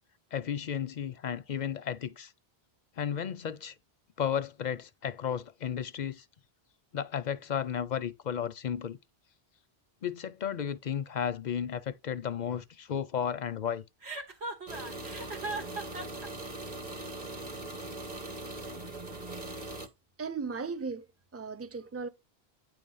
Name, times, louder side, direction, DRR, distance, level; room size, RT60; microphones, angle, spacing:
voice 1, 0.3-2.3 3.0-3.7 4.2-6.2 6.9-9.0 10.0-13.8, left 8 dB, 55° left, 0.5 m, -33 dB
Chuckle chortle, 14.0-16.3, right 3 dB, 85° right, 2.1 m, -38 dB
sound 1, 14.7-19.9, right 2 dB, 40° right, 1.2 m, -40 dB
voice 2, 20.2-21.1 21.3-22.1, right 5 dB, 25° right, 0.3 m, -36 dB
9.3 x 3.2 x 5.4 m
omnidirectional pair, 1.1 m